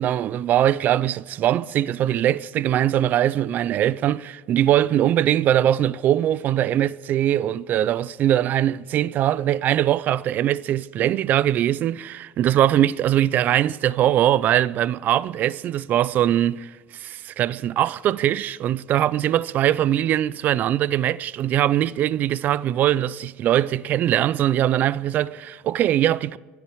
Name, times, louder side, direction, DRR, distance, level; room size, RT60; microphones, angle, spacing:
voice 1, 0.0-26.4, right 11 dB, 35° right, 0.4 m, -21 dB
21.0 x 12.5 x 4.8 m
cardioid pair, 165°, 5 cm